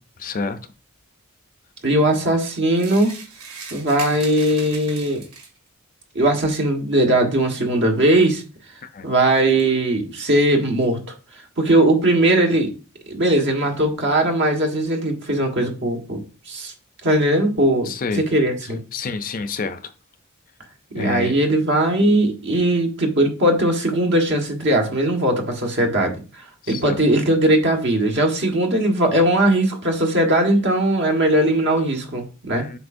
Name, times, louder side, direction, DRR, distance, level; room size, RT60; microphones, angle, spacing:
voice 1, 0.2-0.6 8.9-9.1 17.8-18.3 18.9-19.9 21.0-21.3 26.6-27.0 32.5-32.8, left 4 dB, 40° left, 10 dB, 0.5 m, -28 dB
voice 2, 1.8-3.1 3.7-5.2 6.1-8.4 9.0-11.0 11.6-12.7 13.1-16.2 16.5-16.7 17.0-18.8 20.9-32.7, right 1 dB, 55° right, 3 dB, 1.5 m, -19 dB
sound 1, 2.7-5.7, right 4 dB, 85° right, 2.0 m, -38 dB
7.9 x 5.8 x 2.6 m, 0.34 s
head